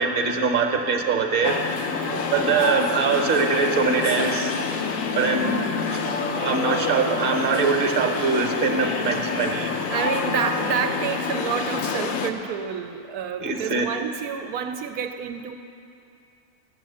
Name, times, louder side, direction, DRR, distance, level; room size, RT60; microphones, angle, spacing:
voice 1, 0.0-1.6 2.3-4.6 5.2-5.6 5.9-9.7 13.4-13.8, right 4 dB, 40° right, 3 dB, 1.0 m, -23 dB
sound 1, 1.4-12.3, left 5 dB, 65° left, 1.0 m, -27 dB
voice 2, 2.0-2.6 5.4-5.7 9.9-15.5, right 7 dB, 80° right, 6 dB, 1.1 m, -29 dB
10.5 x 7.3 x 8.3 m, 2.6 s
omnidirectional pair, 1.6 m